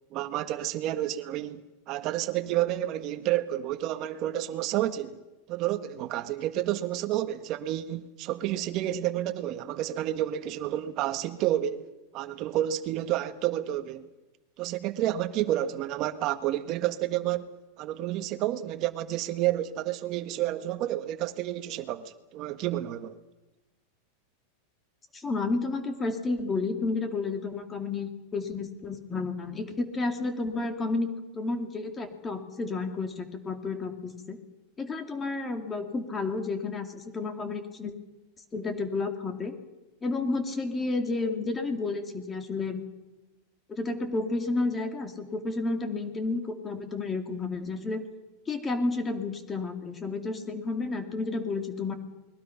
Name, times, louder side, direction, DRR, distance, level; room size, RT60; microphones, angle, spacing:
voice 1, 0.1-5.2 5.5-14.1 14.6-17.5 17.8-23.2, right 13 dB, 35° right, 1.5 m, -30 dB
voice 2, 25.1-31.1 31.3-34.4 34.8-37.9 38.5-39.5 40.0-42.8 43.7-48.0 48.5-51.9, left 3 dB, 15° left, 2.5 m, -31 dB
29.0 x 22.0 x 5.9 m
supercardioid pair, 170°, 0 cm